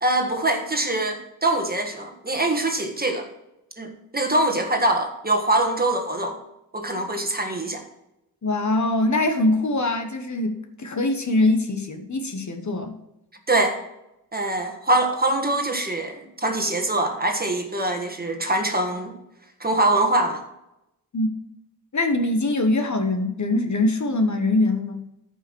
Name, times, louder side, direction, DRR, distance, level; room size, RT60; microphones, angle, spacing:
voice 1, 0.0-3.3 3.8-6.4 6.7-7.8 13.5-13.8 14.3-19.2 19.6-20.4, right 2 dB, 25° right, 4 dB, 1.5 m, -23 dB
voice 2, 8.4-12.9 21.1-21.3 21.9-25.0, left 2 dB, 50° left, 6 dB, 1.2 m, -23 dB
14.0 x 5.6 x 4.6 m, 0.88 s
wide cardioid pair, 135°, 37 cm